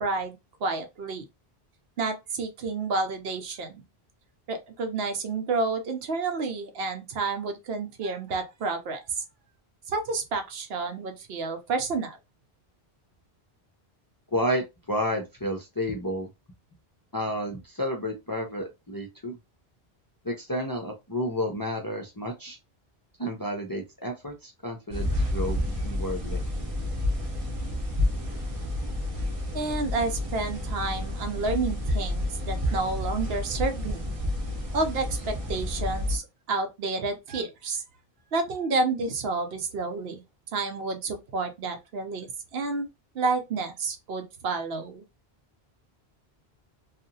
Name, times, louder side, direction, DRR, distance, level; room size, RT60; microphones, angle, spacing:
voice 1, 0.0-1.2 2.0-3.8 4.5-9.2 9.9-12.2 29.5-34.0 34.7-36.2 36.5-37.8 38.3-40.2 40.5-42.9 43.1-45.1, right 3 dB, 70° right, 0.9 m, -30 dB
voice 2, 14.3-16.3 17.1-19.4 20.2-22.6 23.2-26.4, equal, 30° left, 0.4 m, -31 dB
sound 1, 24.9-36.2, left 1 dB, 35° right, 0.8 m, -30 dB
2.8 x 2.4 x 2.6 m
omnidirectional pair, 1.1 m